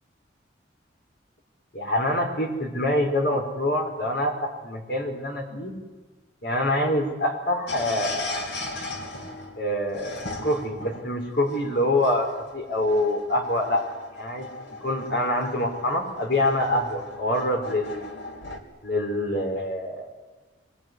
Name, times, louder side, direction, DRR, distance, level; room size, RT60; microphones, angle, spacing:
voice 1, 1.7-4.3 4.6-5.7 6.4-8.6 9.6-12.3 12.5-13.8 14.2-14.5 14.8-18.1 18.8-20.1, left 1 dB, 60° left, 2 dB, 5.3 m, -25 dB
sound 1, 7.7-18.6, left 2 dB, 75° left, 2.9 m, -38 dB
24.5 x 21.0 x 9.9 m, 1.3 s
head